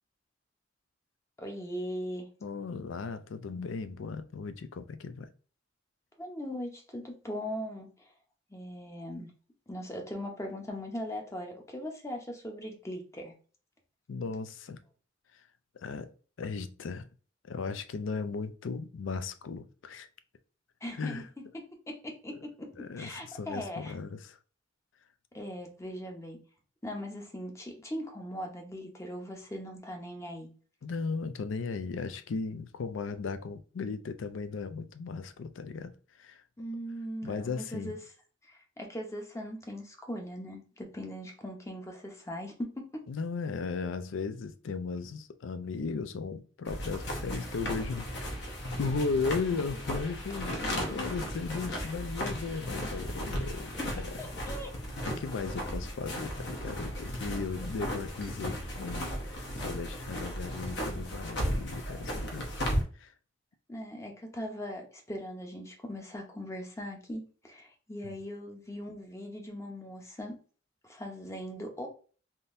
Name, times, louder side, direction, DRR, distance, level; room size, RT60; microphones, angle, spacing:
voice 1, 1.4-2.3 6.2-8.1 8.5-9.3 9.7-13.3 20.8-21.2 21.9-23.9 25.3-26.4 26.8-30.5 36.6-38.0 38.5-42.9 53.8-53.9 54.2-54.7 63.7-70.4 70.8-71.9, equal, 15° left, 0.7 m, -40 dB
voice 2, 2.4-5.3 14.1-14.8 15.3-15.5 15.7-17.1 17.4-20.1 20.9-21.3 22.3-22.5 22.8-24.4 30.8-36.4 37.2-38.0 43.1-48.4 48.8-54.1 55.1-62.6 62.9-63.1 68.0-68.2, left 4 dB, 85° left, 0.4 m, -36 dB
sound 1, 46.7-62.8, equal, 65° left, 0.9 m, -35 dB
3.6 x 2.7 x 2.5 m
head